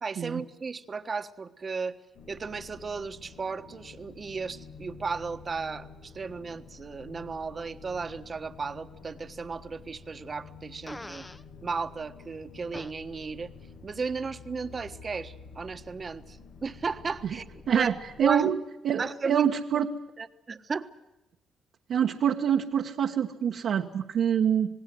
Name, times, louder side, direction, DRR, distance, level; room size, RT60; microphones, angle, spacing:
voice 1, 0.0-2.0 2.3-11.3 11.6-13.5 13.8-17.9 18.2-18.5 19.0-19.8 20.2-20.9, right 4 dB, 35° right, 10 dB, 1.4 m, -35 dB
sound 1, 2.1-18.3, left 4 dB, 65° left, 2.3 m, -49 dB
Fart, 10.9-11.4 12.7-12.9, left 1 dB, 10° left, 0.9 m, -42 dB
voice 2, 17.7-18.5 18.8-19.9 21.9-24.7, right 8 dB, 65° right, 1 dB, 1.4 m, -26 dB
27.5 x 19.5 x 7.8 m, 0.94 s
cardioid pair, 90°, 0 cm